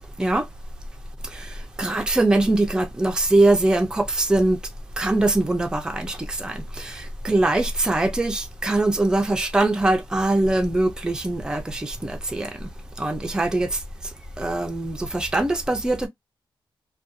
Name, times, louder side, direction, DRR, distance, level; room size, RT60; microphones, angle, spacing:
voice 1, 1.8-4.6 5.0-12.7 13.0-13.8 14.4-16.1, right 2 dB, 10° right, 0.4 m, -22 dB
2.5 x 2.2 x 2.5 m
wide cardioid pair, 135°, 9 cm